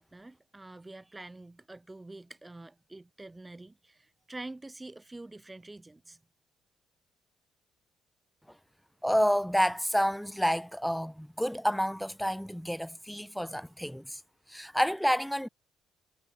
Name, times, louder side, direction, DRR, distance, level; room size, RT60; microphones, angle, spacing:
voice 1, 0.0-6.2, right 2 dB, 15° right, 1.3 m, -46 dB
voice 2, 9.0-14.2 14.5-15.5, equal, ahead, 0.7 m, -29 dB
supercardioid pair, 80°, 0 cm